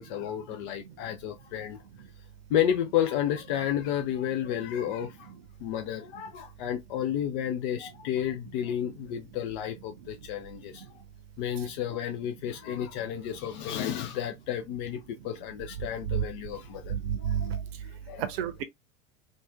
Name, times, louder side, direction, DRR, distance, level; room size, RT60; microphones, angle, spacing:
voice 1, 0.0-1.8 2.5-5.3 5.6-10.9 11.4-18.2, left 10 dB, 50° left, 0.5 m, -32 dB
voice 2, 16.9-17.6 18.2-18.6, right 9 dB, 55° right, 0.7 m, -29 dB
2.8 x 2.5 x 2.2 m
figure-of-eight pair, 75°, 35 cm